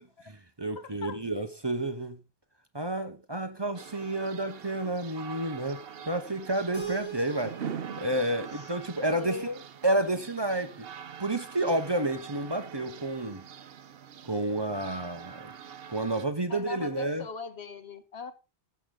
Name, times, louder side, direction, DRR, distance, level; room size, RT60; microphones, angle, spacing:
voice 1, 0.3-2.2 2.7-5.8 6.1-7.7 8.0-9.4 9.8-10.9 11.2-13.4 14.2-15.5 15.9-17.2, right 1 dB, 25° right, 0.9 m, -30 dB
voice 2, 0.8-1.2 8.4-8.7 9.1-9.6 10.0-10.2 16.5-18.3, left 4 dB, 80° left, 1.4 m, -39 dB
sound 1, 3.8-16.3, right 7 dB, 65° right, 1.0 m, -44 dB
Keyboard (musical), 6.7-9.7, right 8 dB, 10° right, 4.7 m, -42 dB
15.5 x 7.1 x 3.8 m
omnidirectional pair, 1.1 m